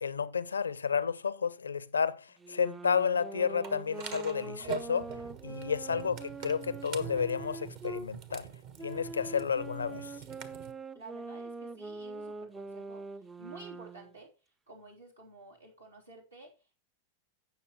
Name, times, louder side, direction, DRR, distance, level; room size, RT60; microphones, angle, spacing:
voice 1, 0.0-5.1 5.4-8.5 8.8-10.1, left 6 dB, 80° left, 0.5 m, -31 dB
sound 1, 2.4-8.1 8.8-14.1, right 3 dB, 15° right, 0.4 m, -43 dB
sound 2, 3.6-10.7, right 8 dB, 50° right, 1.3 m, -44 dB
voice 2, 5.5-5.8 9.1-9.6 10.9-13.0 13.4-14.3 14.7-16.7, right 2 dB, 90° right, 3.4 m, -52 dB
16.5 x 6.1 x 3.1 m
figure-of-eight pair, 90°, 0 cm